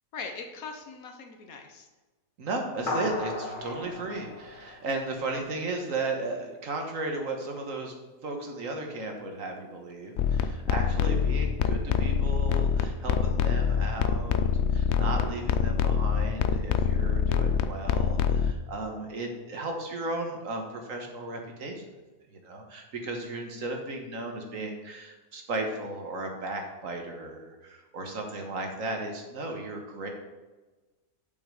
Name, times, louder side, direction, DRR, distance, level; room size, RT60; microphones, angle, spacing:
voice 1, 0.1-1.9 3.6-3.7, left 4 dB, 85° left, 4 dB, 1.4 m, -41 dB
voice 2, 2.4-7.9 8.2-14.5 14.7-21.9 22.3-30.1, right 2 dB, 70° right, 3 dB, 1.7 m, -35 dB
sound 1, 2.9-5.6, left 2 dB, 40° left, 1.3 m, -35 dB
sound 2, 10.2-18.5, left 7 dB, 65° left, 0.7 m, -25 dB
7.1 x 6.3 x 4.9 m, 1.2 s
omnidirectional pair, 1.5 m